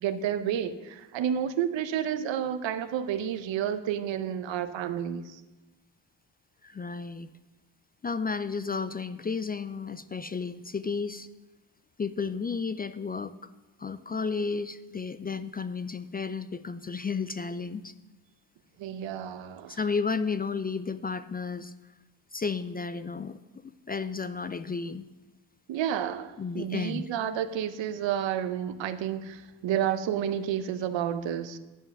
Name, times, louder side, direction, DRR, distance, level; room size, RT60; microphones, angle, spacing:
voice 1, 0.0-5.4 18.8-19.8 25.7-31.6, right 9 dB, 75° right, 12 dB, 0.8 m, -30 dB
voice 2, 6.6-7.3 8.0-11.3 12.0-13.3 13.8-17.9 19.7-21.7 22.3-25.1 26.4-27.0, left 5 dB, 20° left, 12 dB, 0.3 m, -32 dB
9.9 x 5.5 x 5.9 m, 1.1 s
supercardioid pair, 55°, 45 cm